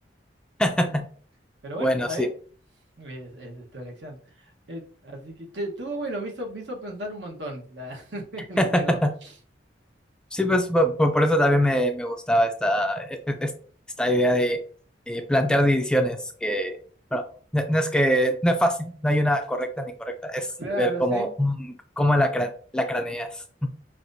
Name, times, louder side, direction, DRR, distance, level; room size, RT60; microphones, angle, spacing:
voice 1, 0.6-1.1 1.8-2.3 8.6-9.1 10.3-13.5 14.0-14.6 15.1-16.8 17.1-17.2 17.5-20.5 20.8-23.3 23.6-23.7, equal, 5° left, 6 dB, 0.4 m, -23 dB
voice 2, 1.6-2.3 3.0-9.3 20.6-21.3, right 1 dB, 75° right, 1 dB, 1.1 m, -35 dB
5.8 x 2.6 x 2.6 m, 0.43 s
head